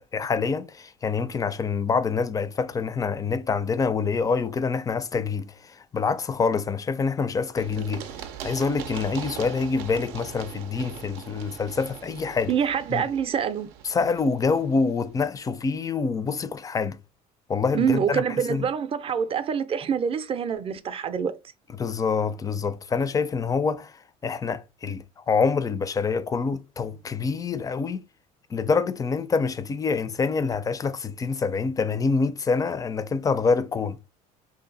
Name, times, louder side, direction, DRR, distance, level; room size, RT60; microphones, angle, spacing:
voice 1, 0.0-8.1 8.4-12.5 12.9-13.1 13.8-17.0 17.5-18.2 18.5-18.7 21.7-28.0 28.5-34.0, left 5 dB, 20° left, 0.4 m, -26 dB
Run, 7.6-15.2, right 9 dB, 85° right, 0.5 m, -41 dB
voice 2, 12.5-13.7 17.7-21.3, right 7 dB, 35° right, 0.5 m, -26 dB
2.7 x 2.4 x 3.9 m
supercardioid pair, 100°, 16 cm